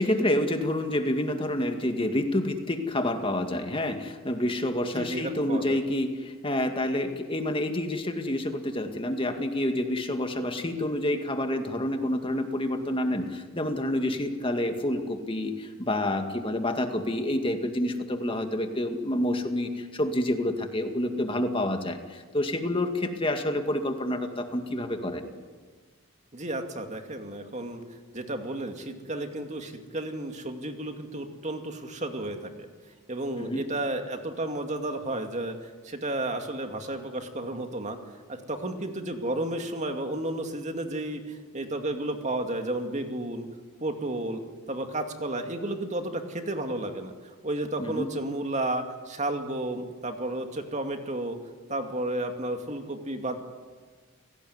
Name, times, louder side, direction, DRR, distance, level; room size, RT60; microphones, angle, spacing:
voice 1, 0.0-25.3 33.4-33.6 47.8-48.1, left 1 dB, 25° left, 5 dB, 2.1 m, -28 dB
voice 2, 4.9-5.8 26.3-27.8 28.1-32.7 33.1-38.0 38.3-43.4 43.8-44.4 44.7-51.4 51.7-53.4, right 1 dB, 35° right, 5 dB, 2.4 m, -32 dB
29.5 x 18.0 x 9.6 m, 1.5 s
head